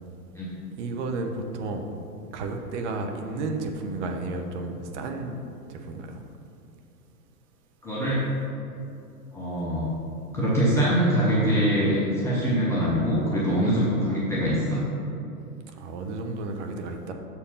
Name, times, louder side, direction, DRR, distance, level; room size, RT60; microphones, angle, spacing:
voice 1, 0.8-1.9 2.3-5.4 5.7-6.2 15.7-17.1, right 3 dB, 45° right, 4 dB, 1.0 m, -32 dB
voice 2, 7.8-8.2 9.3-9.9 10.3-14.8, equal, 5° left, -8 dB, 0.4 m, -23 dB
6.9 x 4.5 x 5.6 m, 2.7 s
hypercardioid pair, 125°, 48 cm